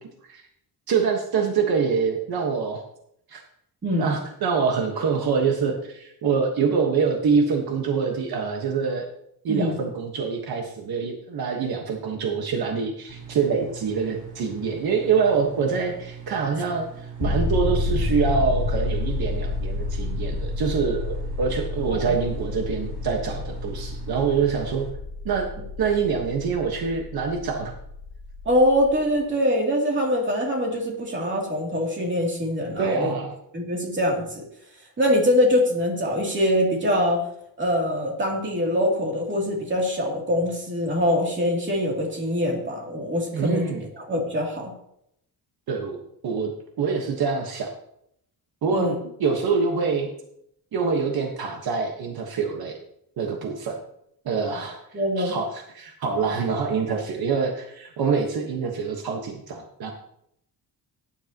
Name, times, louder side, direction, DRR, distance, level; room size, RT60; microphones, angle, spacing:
voice 1, 0.9-2.8 3.3-3.4 4.0-9.0 9.4-24.9 25.2-25.5 25.8-27.7 32.8-33.3 43.3-43.8 45.7-46.5 46.8-47.7 48.6-48.9 49.2-50.1 50.7-52.7 53.2-53.8 54.2-54.8 55.2-59.9, right 5 dB, 70° right, 2 dB, 1.5 m, -25 dB
voice 2, 3.8-4.1 9.5-9.8 22.1-22.2 28.4-33.1 33.5-34.4 35.0-37.2 37.6-43.7 44.0-44.7 48.7-48.9 54.9-55.4, equal, 30° right, -1 dB, 2.9 m, -23 dB
sound 1, 13.1-24.9, right 7 dB, 85° right, 4.5 m, -41 dB
sound 2, 17.2-29.1, left 2 dB, 25° left, 1.4 m, -30 dB
17.5 x 10.5 x 3.0 m, 0.76 s
wide cardioid pair, 175°, 38 cm